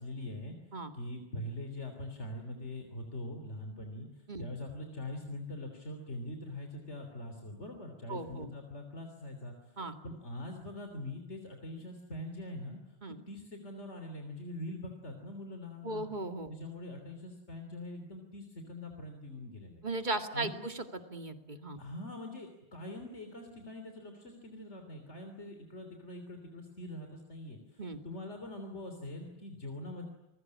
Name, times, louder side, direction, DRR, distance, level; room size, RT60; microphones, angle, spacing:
voice 1, 0.0-0.6 0.9-9.8 10.0-13.0 13.3-16.1 16.5-19.8 20.3-20.6 21.8-30.1, left 1 dB, 80° left, 5 dB, 3.7 m, -43 dB
voice 2, 8.1-8.5 9.8-10.0 13.0-13.2 15.8-16.5 19.8-21.8 27.8-28.0, right 2 dB, 40° right, 7 dB, 2.4 m, -37 dB
28.0 x 21.0 x 9.7 m, 0.95 s
omnidirectional pair, 1.2 m